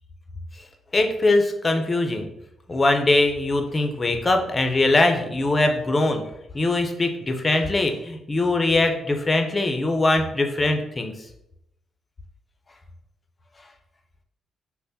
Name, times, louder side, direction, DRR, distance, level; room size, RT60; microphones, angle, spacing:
voice 1, 0.9-2.3 2.7-6.2 6.5-11.1, left 2 dB, 35° left, 5 dB, 0.7 m, -21 dB
3.3 x 2.2 x 4.1 m, 0.80 s
hypercardioid pair, 50°, 0 cm